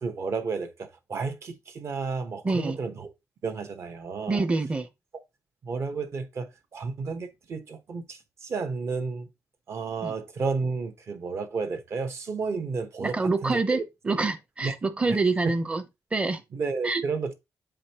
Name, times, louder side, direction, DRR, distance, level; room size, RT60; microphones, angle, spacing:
voice 1, 0.0-3.1 3.4-4.4 5.6-9.3 9.7-13.8 14.6-14.7 15.1-15.2 16.5-17.3, right 4 dB, 50° right, 1.1 m, -32 dB
voice 2, 2.4-2.8 4.3-4.9 10.0-10.1 13.0-13.8 14.0-15.8 16.1-16.4 16.8-17.0, right 3 dB, 20° right, 0.7 m, -26 dB
7.8 x 5.0 x 2.9 m
wide cardioid pair, 150°, 6 cm